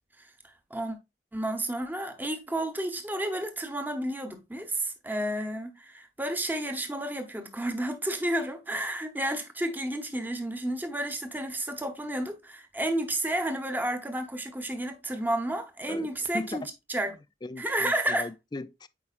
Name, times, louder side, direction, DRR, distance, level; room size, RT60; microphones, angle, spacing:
voice 1, 0.2-1.0 1.3-16.6 16.9-17.1 17.6-18.3, right 1 dB, 10° right, 0.9 m, -31 dB
voice 2, 15.9-16.6 17.1-18.9, left 2 dB, 25° left, 0.3 m, -39 dB
8.5 x 4.7 x 2.4 m
head